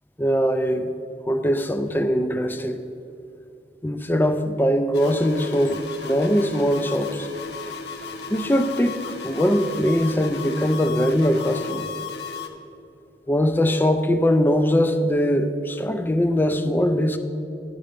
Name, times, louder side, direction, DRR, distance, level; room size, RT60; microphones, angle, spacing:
voice 1, 0.2-0.9 1.3-2.8 3.8-7.3 8.3-11.9 13.3-17.2, equal, 10° left, 9 dB, 0.3 m, -21 dB
sound 1, 4.9-12.5, left 5 dB, 75° left, 0.7 m, -35 dB
10.5 x 5.4 x 5.1 m, 2.8 s
head